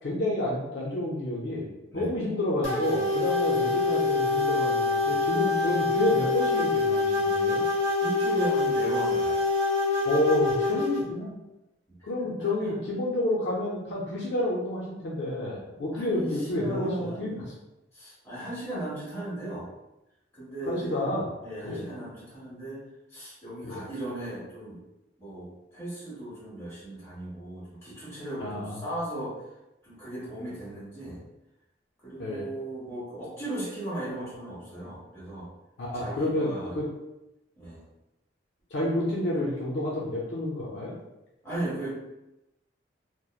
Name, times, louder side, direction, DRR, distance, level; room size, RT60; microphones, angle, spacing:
voice 1, 0.0-7.6 10.1-11.3 12.0-17.4 20.7-21.3 21.6-21.9 23.6-23.9 28.4-28.8 32.2-32.5 35.8-36.9 38.7-40.9, left 1 dB, 65° left, -4 dB, 0.5 m, -29 dB
sound 1, 2.6-11.0, left 3 dB, 15° right, 0.8 m, -25 dB
voice 2, 8.0-9.4 12.4-12.7 15.9-17.4 17.9-19.7 20.3-21.2 21.4-22.8 23.1-24.8 25.2-29.3 29.8-31.2 32.0-35.5 35.9-36.7 37.6-37.8 41.4-42.0, right 1 dB, 15° left, -9 dB, 1.3 m, -36 dB
2.8 x 2.0 x 2.3 m, 0.95 s
head